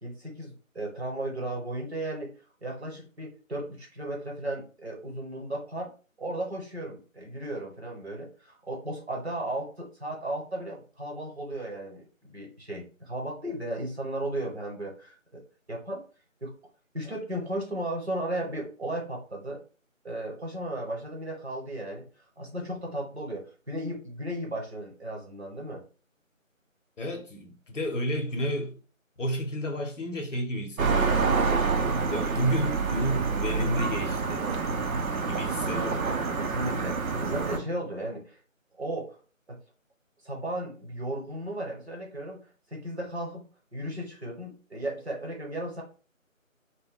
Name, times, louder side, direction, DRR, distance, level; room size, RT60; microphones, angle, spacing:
voice 1, 0.0-2.3 2.6-5.9 6.2-15.4 15.7-16.0 16.4-16.5 16.9-19.6 20.0-22.1 22.4-25.8 35.7-38.4 38.7-39.2 39.5-39.6 40.2-43.4 43.7-45.8, right 1 dB, 50° right, 0.9 m, -35 dB
voice 2, 27.0-28.8 29.2-31.6 32.1-34.5 35.2-36.1, equal, 65° left, 0.7 m, -31 dB
sound 1, 30.8-37.6, right 4 dB, 90° right, 0.6 m, -27 dB
2.1 x 2.1 x 3.4 m
figure-of-eight pair, 175°, 41 cm